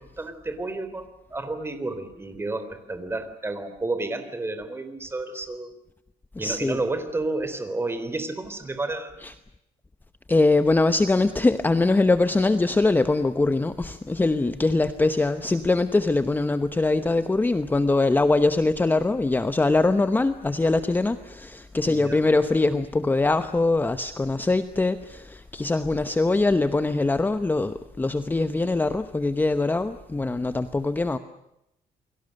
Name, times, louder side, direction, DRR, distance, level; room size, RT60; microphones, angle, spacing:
voice 1, 0.0-5.7 6.4-9.2 21.8-22.3, right 2 dB, 15° right, 10 dB, 3.8 m, -31 dB
voice 2, 6.4-6.8 9.2-9.4 10.3-31.2, left 2 dB, 10° left, 11 dB, 1.0 m, -22 dB
29.5 x 23.0 x 6.6 m, 0.83 s
cardioid pair, 140°, 15 cm